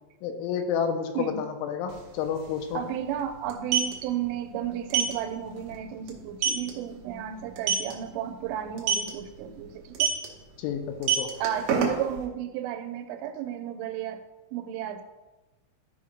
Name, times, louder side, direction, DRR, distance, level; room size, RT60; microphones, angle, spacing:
voice 1, 0.2-2.8 10.6-11.3, left 7 dB, 85° left, 6 dB, 3.0 m, -30 dB
sound 1, 1.9-2.0 2.2-2.4 3.4-3.9 4.9-5.1 5.6-5.7 6.1-6.2 6.4-6.7 7.6-7.9 8.8-9.1 9.9-10.3 10.9-12.2, right 7 dB, 70° right, 2.3 m, -24 dB
voice 2, 2.7-10.1 11.4-14.2 14.5-15.0, right 10 dB, 90° right, 8 dB, 3.2 m, -33 dB
13.5 x 5.0 x 3.1 m, 1.1 s
omnidirectional pair, 5.7 m